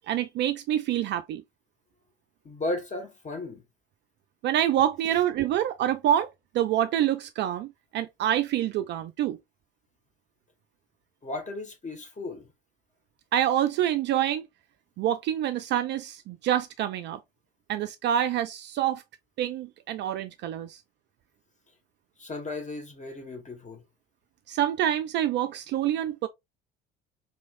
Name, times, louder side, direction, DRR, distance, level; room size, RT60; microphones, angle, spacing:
voice 1, 0.1-1.4 4.4-6.3 6.5-9.4 13.3-14.5 15.0-17.2 17.7-19.0 19.4-20.8 24.5-26.3, right 11 dB, 40° right, 0.4 m, -26 dB
voice 2, 2.4-3.6 11.2-12.5 22.2-23.8, left 2 dB, 25° left, 1.4 m, -35 dB
4.3 x 3.0 x 2.4 m
figure-of-eight pair, 60°, 30 cm